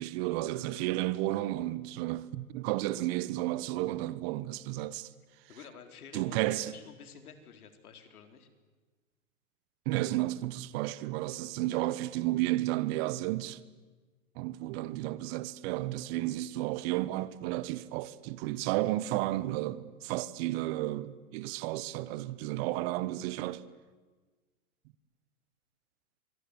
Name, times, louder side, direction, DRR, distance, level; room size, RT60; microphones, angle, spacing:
voice 1, 0.0-5.1 6.1-6.7 9.8-13.6 14.4-23.6, right 16 dB, 40° right, 1.3 m, -32 dB
voice 2, 5.5-8.5 11.7-11.9, left 6 dB, 75° left, 4.1 m, -50 dB
26.5 x 20.5 x 9.8 m
hypercardioid pair, 120°, 44 cm